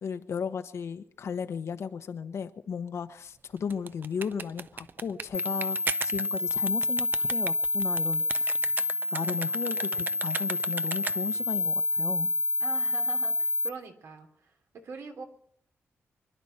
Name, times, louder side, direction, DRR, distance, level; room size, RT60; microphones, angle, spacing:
voice 1, 0.0-5.8 6.0-8.5 9.1-12.3, left 6 dB, 70° left, 9 dB, 1.1 m, -35 dB
sound 1, 3.6-11.5, right 5 dB, 45° right, 0.6 m, -37 dB
sound 2, 5.3-13.7, left 3 dB, 50° left, 0.8 m, -28 dB
voice 2, 12.6-14.5 14.8-15.2, right 4 dB, 75° right, 4 dB, 3.0 m, -42 dB
25.5 x 11.5 x 4.4 m, 0.65 s
wide cardioid pair, 135°, 5 cm